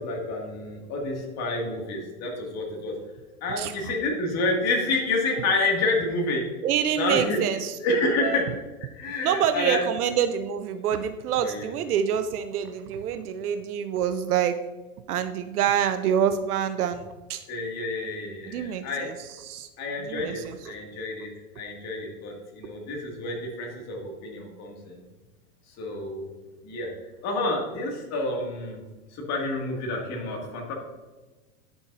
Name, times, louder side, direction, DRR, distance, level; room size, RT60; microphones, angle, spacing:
voice 1, 0.0-2.9 3.4-6.5 6.9-7.4 7.8-8.5 8.8-9.8 11.4-11.7 17.5-19.1 19.8-21.3 21.6-25.0 25.8-26.3 26.6-26.9 27.2-28.8 29.1-30.7, left 2 dB, 35° left, -1 dB, 2.4 m, -29 dB
voice 2, 6.6-7.8 8.2-8.4 9.2-14.6 15.1-17.4 18.5-19.7 20.1-20.7, right 9 dB, 80° right, 9 dB, 0.7 m, -26 dB
10.0 x 6.9 x 2.7 m, 1.2 s
hypercardioid pair, 120°, 44 cm